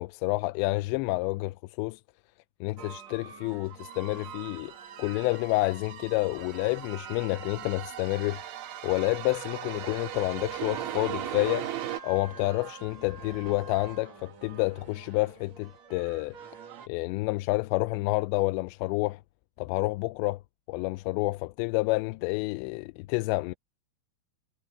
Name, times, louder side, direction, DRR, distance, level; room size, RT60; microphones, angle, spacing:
voice 1, 0.0-2.0 2.6-4.7 5.0-8.4 8.8-11.7 12.0-16.4 16.9-19.2 19.6-20.4 20.7-23.5, left 22 dB, 90° left, 2.8 m, -29 dB
sound 1, 2.8-16.9, right 6 dB, 50° right, 2.5 m, -46 dB
sound 2, 3.8-12.0, right 12 dB, 90° right, 4.2 m, -39 dB
omnidirectional pair, 5.0 m